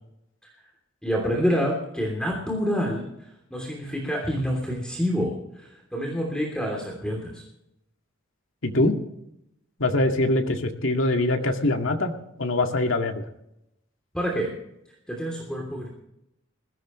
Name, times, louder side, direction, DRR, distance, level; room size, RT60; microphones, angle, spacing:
voice 1, 1.0-7.4 14.1-14.5 15.1-15.9, equal, 5° left, -1 dB, 3.1 m, -27 dB
voice 2, 8.6-8.9 9.8-12.1 12.4-13.1, left 2 dB, 85° left, 4 dB, 2.0 m, -23 dB
20.5 x 16.0 x 3.2 m, 0.81 s
head